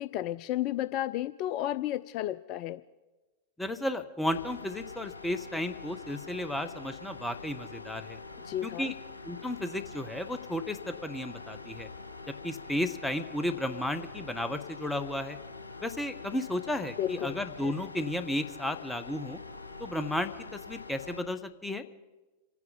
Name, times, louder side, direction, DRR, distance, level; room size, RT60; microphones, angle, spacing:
voice 1, 0.0-2.8 8.4-8.9 17.0-17.4, left 13 dB, 40° left, 14 dB, 0.4 m, -32 dB
voice 2, 3.6-8.2 8.6-8.9 9.2-11.9 12.3-15.4 15.8-19.4 19.8-21.8, left 1 dB, 5° left, 9 dB, 1.0 m, -33 dB
sound 1, 4.3-21.2, left 3 dB, 80° left, 1.5 m, -45 dB
28.0 x 9.5 x 5.2 m, 1.2 s
figure-of-eight pair, 90°, 0 cm